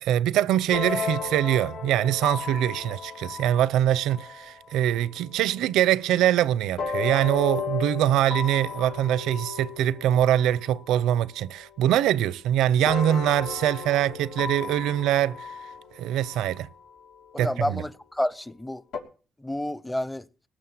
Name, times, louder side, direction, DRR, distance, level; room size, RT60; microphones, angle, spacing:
voice 1, 0.0-15.5 16.0-16.7 17.4-17.8, right 12 dB, 90° right, 0.6 m, -23 dB
sound 1, 0.7-5.5 6.8-11.1 11.4-12.4 12.9-17.8 18.9-19.0, left 5 dB, 85° left, 3.2 m, -35 dB
voice 2, 17.3-18.8 19.4-20.3, left 1 dB, 10° left, 0.7 m, -29 dB
19.0 x 6.6 x 9.3 m
cardioid pair, 90°, 0 cm